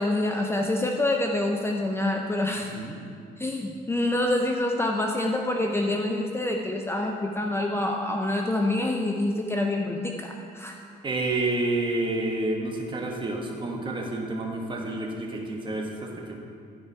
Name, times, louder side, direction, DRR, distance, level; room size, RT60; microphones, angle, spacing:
voice 1, 0.0-2.7 3.4-10.8, left 1 dB, 15° left, 2 dB, 0.6 m, -26 dB
voice 2, 11.0-16.4, right 2 dB, 30° right, 0 dB, 1.4 m, -29 dB
12.5 x 4.9 x 4.6 m, 2.3 s
cardioid pair, 110°, 17 cm